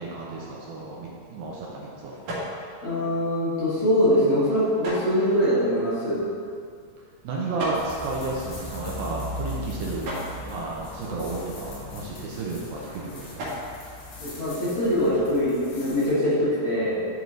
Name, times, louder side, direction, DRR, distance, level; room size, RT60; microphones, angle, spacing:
voice 1, 0.0-2.2 7.2-10.1 10.5-13.5, right 3 dB, 75° right, -4 dB, 2.5 m, -32 dB
sound 1, 0.6-15.0, equal, 55° right, 3.2 m, -40 dB
voice 2, 2.8-6.2 14.2-16.9, equal, 40° left, -12 dB, 2.4 m, -23 dB
sound 2, 7.7-16.1, left 1 dB, 70° left, 3.7 m, -39 dB
11.0 x 4.8 x 4.0 m, 2.3 s
omnidirectional pair, 4.7 m